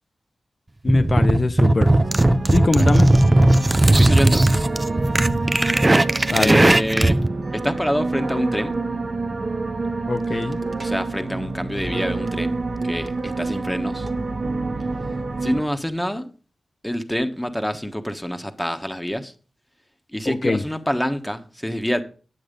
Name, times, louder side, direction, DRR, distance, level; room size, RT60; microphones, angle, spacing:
voice 1, 0.8-1.9 2.5-3.1 6.3-6.6 10.1-10.6 20.3-20.6, left 3 dB, 45° left, 0.6 m, -22 dB
sound 1, 0.9-7.3, right 1 dB, 25° right, 0.6 m, -17 dB
sound 2, 2.0-15.6, right 3 dB, 55° right, 1.4 m, -28 dB
voice 2, 2.6-2.9 3.9-4.7 6.4-7.2 7.5-8.7 10.8-12.6 12.8-14.1 15.4-16.3 16.8-19.3 20.1-22.0, equal, 5° left, 1.2 m, -26 dB
9.6 x 7.8 x 5.2 m
cardioid pair, 60°, 0 cm